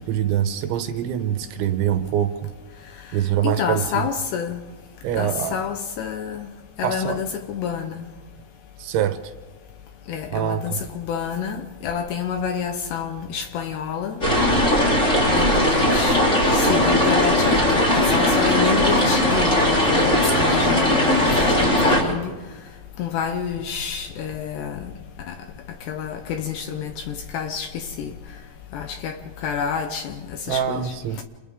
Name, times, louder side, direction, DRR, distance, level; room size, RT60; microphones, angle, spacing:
voice 1, 0.0-2.5 3.1-4.1 5.0-5.6 6.8-7.2 8.8-9.3 10.3-10.8 30.5-31.2, right 10 dB, 75° right, 3.2 m, -24 dB
voice 2, 3.4-4.6 5.2-6.5 6.8-8.0 10.1-14.2 15.3-16.2 16.5-22.3 23.0-24.9 25.3-25.4 25.9-28.1 28.7-30.9, left 7 dB, 75° left, 2.7 m, -28 dB
sound 1, 14.2-22.0, left 1 dB, 15° left, 3.5 m, -18 dB
29.0 x 28.5 x 3.7 m
omnidirectional pair, 5.7 m